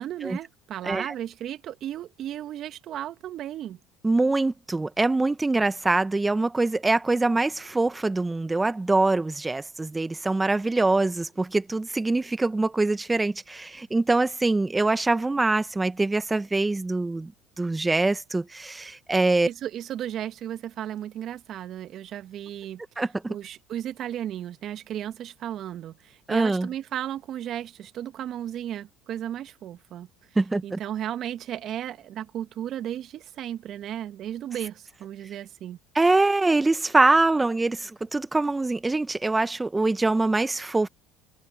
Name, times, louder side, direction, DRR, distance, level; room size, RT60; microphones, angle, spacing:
voice 1, 0.0-3.8 19.5-22.8 23.3-30.1 30.6-35.8, right 11 dB, 55° right, 1.6 m, -34 dB
voice 2, 4.0-17.3 17.6-19.5 23.0-23.3 26.3-26.7 30.4-30.8 35.9-40.9, right 2 dB, 15° right, 1.2 m, -24 dB
hypercardioid pair, 80°, 0 cm